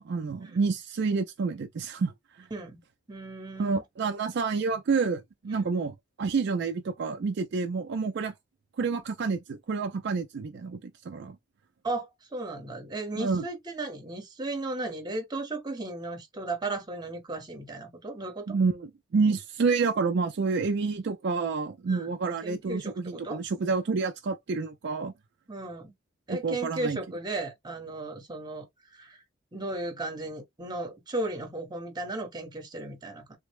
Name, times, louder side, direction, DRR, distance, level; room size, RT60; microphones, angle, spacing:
voice 1, 0.0-2.1 3.6-8.3 8.8-11.4 13.2-13.4 18.5-25.1 26.3-27.0, right 4 dB, 60° right, 0.4 m, -29 dB
voice 2, 2.5-2.8 3.1-3.8 5.5-5.7 11.8-18.6 21.9-22.1 22.4-23.4 25.5-25.9 26.3-28.7 28.9-29.2 29.5-33.4, right 2 dB, 20° right, 0.9 m, -35 dB
3.4 x 2.0 x 3.4 m
head